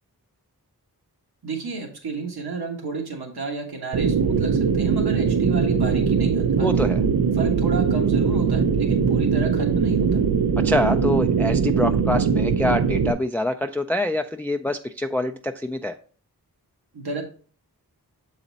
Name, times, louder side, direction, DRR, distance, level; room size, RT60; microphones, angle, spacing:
voice 1, 1.4-6.7 7.3-10.2 16.9-17.2, right 4 dB, 90° right, 1 dB, 1.4 m, -31 dB
sound 1, 3.9-13.1, right 6 dB, 70° right, 0.6 m, -21 dB
voice 2, 6.6-7.0 10.6-15.9, left 1 dB, 5° left, 6 dB, 0.3 m, -25 dB
7.2 x 4.1 x 3.9 m, 0.43 s
wide cardioid pair, 55°, 37 cm